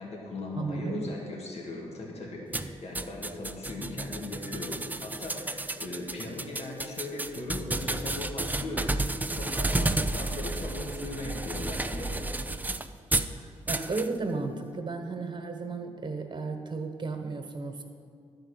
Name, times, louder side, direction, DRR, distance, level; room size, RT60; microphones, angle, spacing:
voice 1, 0.0-9.0 9.3-12.2, left 2 dB, 60° left, -2 dB, 2.0 m, -38 dB
voice 2, 0.6-1.1 13.7-17.8, right 3 dB, 40° right, 5 dB, 1.3 m, -34 dB
sound 1, 2.5-13.3 13.7-14.1, right 2 dB, 15° right, 0.5 m, -32 dB
11.0 x 4.9 x 8.2 m, 2.2 s
cardioid pair, 60°, 12 cm